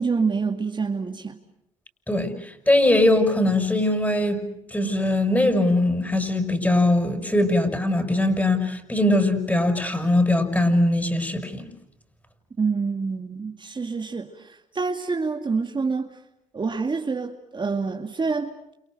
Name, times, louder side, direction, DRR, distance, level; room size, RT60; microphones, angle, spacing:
voice 1, 0.0-1.4 12.6-16.2 16.5-18.7, right 4 dB, 30° right, 2.3 m, -27 dB
voice 2, 2.1-11.7, left 1 dB, 10° left, 6.7 m, -21 dB
30.0 x 28.5 x 6.6 m
cardioid pair, 80°, 15 cm